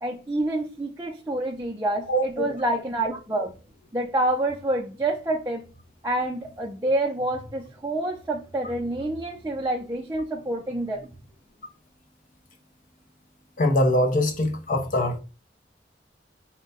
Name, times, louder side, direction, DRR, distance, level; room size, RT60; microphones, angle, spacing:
voice 1, 0.0-3.5 3.9-5.6 6.0-11.1, right 1 dB, 15° right, 0.5 m, -27 dB
voice 2, 2.1-2.5 13.6-15.2, left 1 dB, 45° left, 0.7 m, -23 dB
4.4 x 2.2 x 3.9 m
head